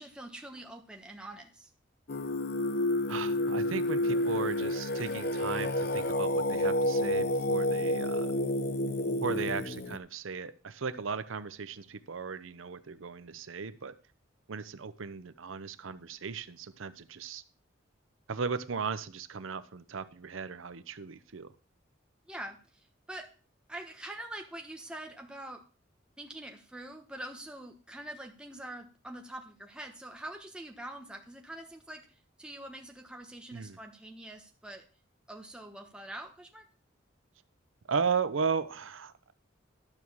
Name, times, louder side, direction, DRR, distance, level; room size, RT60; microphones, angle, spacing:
voice 1, 0.0-1.7 22.3-23.3 23.7-25.6 26.2-34.8 35.3-36.6, right 1 dB, 5° right, 3 dB, 1.1 m, -44 dB
Singing, 2.1-10.0, left 1 dB, 50° left, 0.7 m, -30 dB
voice 2, 3.1-8.4 9.2-13.9 14.5-17.4 18.3-21.5 33.5-33.8 37.9-39.1, right 5 dB, 80° right, 13 dB, 0.7 m, -36 dB
12.0 x 4.6 x 7.1 m, 0.38 s
head